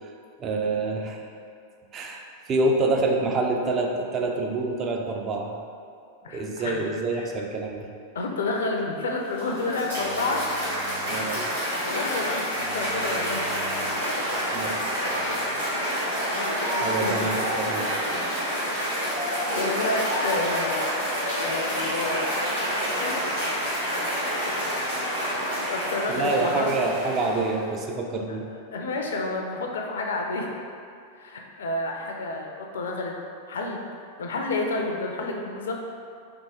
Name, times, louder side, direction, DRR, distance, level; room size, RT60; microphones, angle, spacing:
voice 1, 0.4-1.2 1.9-5.6 6.3-7.9 11.1-11.4 14.5-14.8 16.8-17.9 25.6-25.7 26.1-28.5, right 2 dB, 30° right, 1 dB, 0.3 m, -27 dB
voice 2, 6.2-6.8 7.1-7.3 8.1-10.8 11.8-13.4 13.9-14.4 14.9-15.0 15.4-17.3 17.7-17.9 18.1-18.3 19.5-22.5 23.0-23.3 25.4-26.8 28.0-30.6 31.2-33.1 33.5-33.8 34.2-35.7, left 2 dB, 65° left, 1 dB, 0.4 m, -31 dB
Cheering / Applause, 9.1-27.7, equal, 85° right, 1.4 m, -28 dB
sound 1, 10.0-15.7, right 1 dB, 65° right, 0.7 m, -46 dB
3.4 x 2.7 x 2.8 m, 2.3 s
figure-of-eight pair, 90°, 0 cm